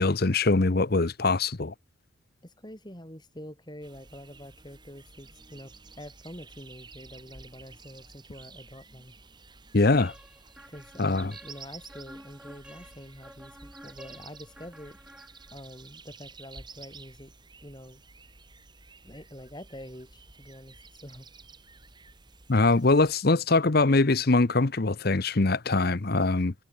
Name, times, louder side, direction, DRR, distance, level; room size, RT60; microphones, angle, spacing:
voice 1, 0.0-1.7 9.7-10.1 11.0-11.3 22.5-26.5, left 3 dB, 50° left, 0.8 m, -23 dB
voice 2, 2.4-9.2 10.7-15.0 15.5-17.3 17.6-18.0 19.0-21.3, equal, 20° left, 7.7 m, -46 dB
sound 1, 3.8-23.2, right 4 dB, 20° right, 2.8 m, -51 dB
sound 2, 10.0-15.8, right 1 dB, 5° right, 3.3 m, -51 dB
head